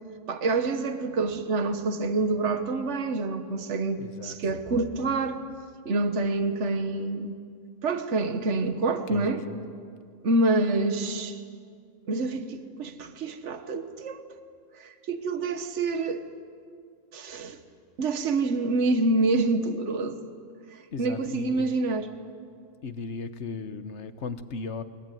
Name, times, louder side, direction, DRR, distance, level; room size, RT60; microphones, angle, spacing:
voice 1, 0.3-5.4 5.8-7.3 7.8-9.4 10.2-11.4 12.1-14.2 14.8-16.2 17.1-17.6 18.0-20.2 20.7-22.1, right 2 dB, 60° right, 8 dB, 1.6 m, -27 dB
voice 2, 4.0-4.4 9.1-9.6 20.9-21.8 22.8-24.8, left 4 dB, 60° left, 10 dB, 1.4 m, -36 dB
22.5 x 22.0 x 9.3 m, 2.2 s
omnidirectional pair, 1.4 m